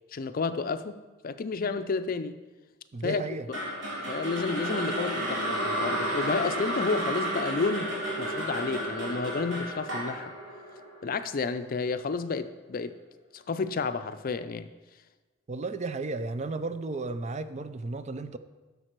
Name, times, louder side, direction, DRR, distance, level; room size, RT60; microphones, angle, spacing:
voice 1, 0.1-1.0 1.2-2.4 3.0-3.6 4.1-10.3 11.0-13.0 13.3-14.7, left 4 dB, 50° left, 0.5 m, -31 dB
voice 2, 2.9-3.5 15.5-18.4, right 3 dB, 35° right, 0.4 m, -34 dB
sound 1, 3.5-11.7, right 1 dB, 70° right, 3.1 m, -32 dB
11.0 x 6.7 x 4.6 m
head